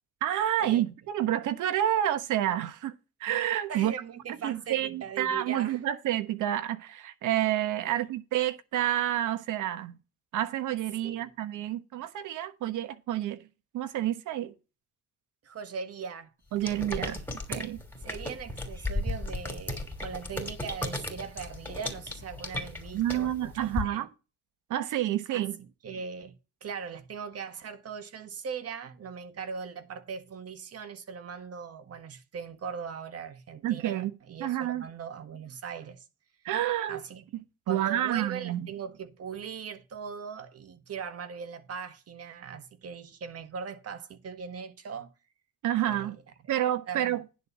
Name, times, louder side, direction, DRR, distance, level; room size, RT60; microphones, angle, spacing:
voice 1, 0.2-3.9 4.4-10.0 10.3-13.5 13.7-14.5 16.5-17.2 17.5-17.8 22.9-24.1 24.7-25.6 33.6-34.1 34.4-34.9 36.4-37.0 37.3-38.7 45.6-46.2 46.5-47.2, right 12 dB, 80° right, 1.1 m, -29 dB
voice 2, 3.7-5.8 7.9-8.0 11.0-11.3 15.4-16.3 17.0-17.2 18.0-24.1 25.3-25.5 25.8-26.3 26.6-36.0 36.9-37.2 37.7-45.1 45.8-46.2 46.6-47.2, right 6 dB, 55° right, 1.7 m, -40 dB
sound 1, 16.6-23.8, left 2 dB, 5° left, 3.0 m, -35 dB
10.5 x 4.1 x 7.3 m
cardioid pair, 90°, 30 cm